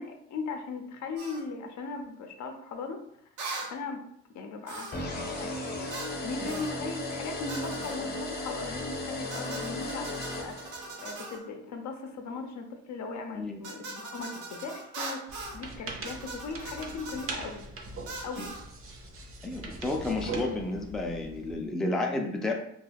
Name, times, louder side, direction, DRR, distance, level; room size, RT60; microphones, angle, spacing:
voice 1, 0.0-3.0 3.7-4.1 4.3-5.9 6.2-17.7 18.2-18.5, left 4 dB, 70° left, 5 dB, 0.6 m, -38 dB
sound 1, 1.2-1.4 3.4-3.7 4.7-5.1 5.9-6.2 6.5-6.7 7.5-8.0 9.3-11.4 13.6-15.6 16.0-17.3 18.1-18.6, right 3 dB, 85° right, 0.7 m, -40 dB
sound 2, 4.9-11.1, left 2 dB, 30° left, 0.8 m, -36 dB
sound 3, 15.3-21.6, right 3 dB, 45° right, 0.6 m, -41 dB
voice 2, 19.4-22.5, left 2 dB, ahead, 1 dB, 0.4 m, -31 dB
2.3 x 2.3 x 3.3 m, 0.71 s
cardioid pair, 90°, 30 cm